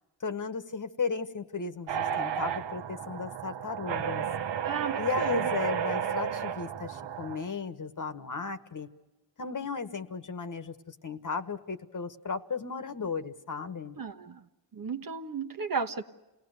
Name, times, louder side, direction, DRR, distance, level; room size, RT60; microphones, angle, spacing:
voice 1, 0.2-4.2 5.0-8.9 9.4-14.0, left 5 dB, 40° left, 9 dB, 1.5 m, -35 dB
sound 1, 1.9-7.4, right 8 dB, 65° right, 1.1 m, -32 dB
voice 2, 4.6-5.5 14.0-14.4 14.7-16.0, right 5 dB, 45° right, 4 dB, 1.3 m, -34 dB
28.5 x 18.5 x 6.6 m, 1.1 s
cardioid pair, 75°, 46 cm